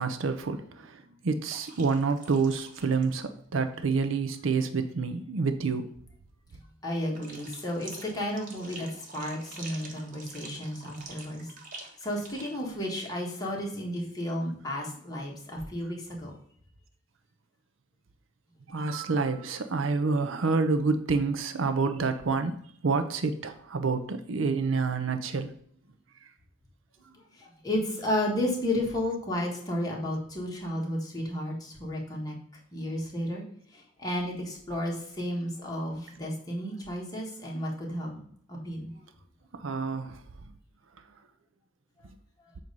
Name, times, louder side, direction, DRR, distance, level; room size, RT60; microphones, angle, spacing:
voice 1, 0.0-5.9 18.7-25.5 39.6-40.2, right 4 dB, 75° right, 0.6 m, -28 dB
sound 1, 1.5-3.2 3.6-3.7 7.1-12.6, right 3 dB, 45° right, 1.2 m, -47 dB
voice 2, 6.8-11.5 11.8-16.3 27.4-32.3 32.7-33.4 33.7-38.2 38.5-38.9, left 1 dB, 20° left, 1.6 m, -32 dB
7.4 x 2.7 x 5.3 m
head